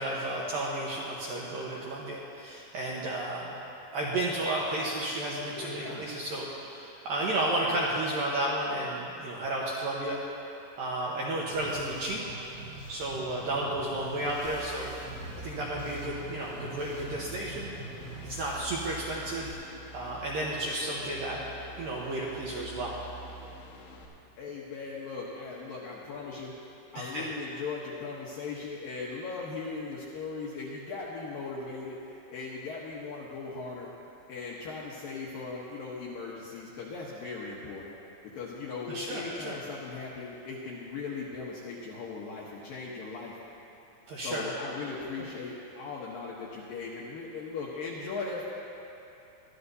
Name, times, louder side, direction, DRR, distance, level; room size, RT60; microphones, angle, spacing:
voice 1, 0.0-3.6 3.9-10.2 10.8-12.2 12.9-14.9 15.4-17.7 18.2-19.5 19.9-21.4 21.8-23.0 27.0-27.3 38.9-39.6 44.1-44.5, right 1 dB, 75° right, -5 dB, 2.2 m, -32 dB
voice 2, 5.5-6.1 24.4-26.5 26.9-33.9 34.3-37.9 38.3-43.4 44.1-48.4, left 4 dB, 70° left, -5 dB, 2.2 m, -38 dB
sound 1, 11.5-19.5, right 2 dB, 90° right, 4.2 m, -44 dB
sound 2, 14.5-24.1, right 1 dB, 85° left, 3.9 m, -47 dB
23.0 x 13.0 x 2.8 m, 2.8 s
omnidirectional pair, 5.4 m